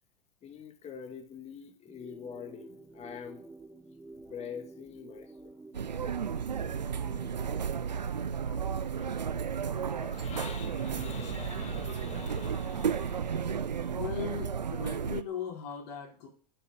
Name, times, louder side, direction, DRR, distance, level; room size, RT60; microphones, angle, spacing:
voice 1, 0.4-3.5 4.1-5.6 6.3-6.7 7.1-13.9, left 7 dB, 30° left, 2.4 m, -46 dB
sound 1, 1.9-7.9, right 2 dB, 10° right, 1.6 m, -50 dB
sound 2, 5.7-15.2, right 7 dB, 90° right, 0.6 m, -33 dB
voice 2, 13.9-16.3, left 7 dB, 60° left, 4.4 m, -38 dB
8.9 x 7.9 x 6.4 m
hypercardioid pair, 90°, 21 cm